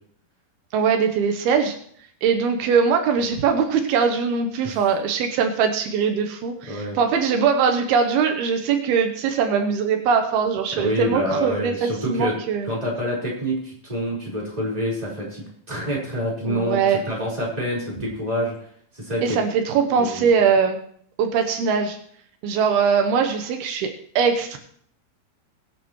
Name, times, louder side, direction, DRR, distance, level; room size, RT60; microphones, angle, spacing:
voice 1, 0.7-1.8 2.2-12.7 16.5-17.0 19.2-20.8 21.2-22.0 22.4-24.6, right 6 dB, 85° right, 6 dB, 3.0 m, -21 dB
voice 2, 6.7-7.0 10.7-12.3 12.6-18.6 18.9-19.4 20.0-20.3, equal, 10° right, -5 dB, 4.2 m, -27 dB
22.0 x 8.6 x 3.2 m, 0.63 s
omnidirectional pair, 4.4 m